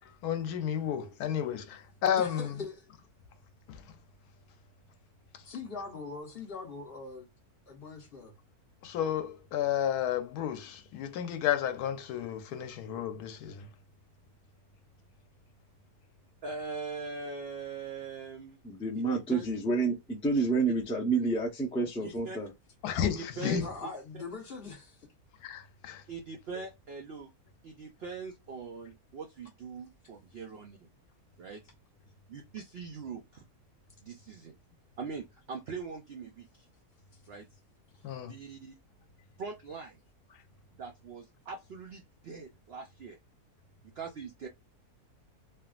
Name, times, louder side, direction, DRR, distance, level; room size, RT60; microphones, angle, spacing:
voice 1, 0.2-2.6 3.7-3.8 8.8-13.7 22.8-23.7 25.4-26.0 38.0-38.3, left 9 dB, 90° left, 1.1 m, -32 dB
voice 2, 2.1-2.9 5.4-7.3 7.7-8.3 23.6-25.1, left 4 dB, 45° left, 1.0 m, -42 dB
voice 3, 16.4-18.6 19.0-19.5 22.0-22.4 23.0-23.6 26.1-27.3 27.6-30.9 31.4-31.6 32.3-33.4 34.0-34.6 35.0-36.7 37.3-37.5 38.2-38.7 39.4-40.0 40.7-43.2 44.0-44.5, right 4 dB, 70° right, 0.5 m, -42 dB
voice 4, 18.6-22.5, right 3 dB, 10° left, 0.4 m, -29 dB
3.4 x 2.3 x 2.4 m
omnidirectional pair, 1.6 m